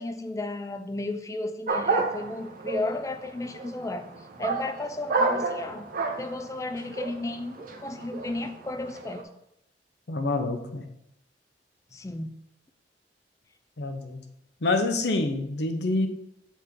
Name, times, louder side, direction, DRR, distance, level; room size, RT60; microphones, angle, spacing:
voice 1, 0.0-4.1 4.4-5.9 6.2-9.3 11.9-12.3, left 2 dB, 15° left, 7 dB, 0.4 m, -34 dB
sound 1, 1.7-9.2, right 3 dB, 50° right, 0.7 m, -31 dB
voice 2, 10.1-10.9 13.8-14.2 14.6-16.1, left 2 dB, 65° left, 7 dB, 0.8 m, -27 dB
7.6 x 4.1 x 3.7 m, 0.79 s
head